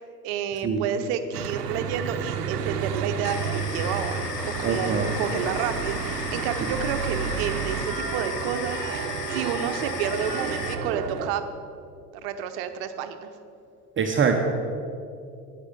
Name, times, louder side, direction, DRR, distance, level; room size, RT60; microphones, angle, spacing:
voice 1, 0.2-4.3 4.6-11.4 12.2-13.3, right 8 dB, 50° right, 9 dB, 1.0 m, -30 dB
Church bell / Traffic noise roadway noise, 1.3-11.3, right 6 dB, 85° right, 0.8 m, -31 dB
sound 1, 3.2-10.7, left 6 dB, 80° left, 1.0 m, -35 dB
voice 2, 4.6-5.1 14.0-14.4, right 6 dB, 25° right, 2 dB, 1.0 m, -23 dB
11.5 x 9.4 x 5.4 m, 2.5 s
figure-of-eight pair, 75°, 47 cm